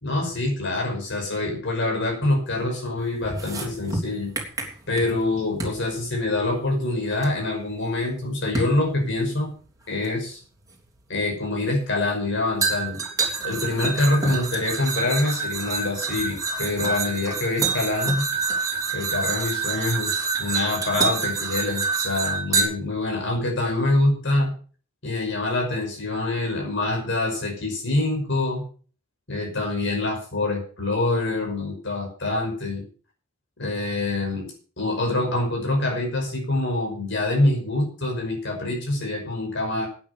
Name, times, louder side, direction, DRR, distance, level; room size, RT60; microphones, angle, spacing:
voice 1, 0.0-4.3 4.9-9.5 9.9-10.4 11.1-13.0 13.4-18.6 18.9-24.5 25.0-28.6 29.3-32.8 33.6-34.5 34.8-39.9, left 2 dB, 60° left, 0 dB, 5.6 m, -25 dB
sound 1, 3.2-5.3 5.6-5.8 7.2-7.3 8.6-8.8 10.0-10.1 12.6-22.6, right 4 dB, 15° right, 3.3 m, -27 dB
12.0 x 9.9 x 6.8 m, 0.41 s
head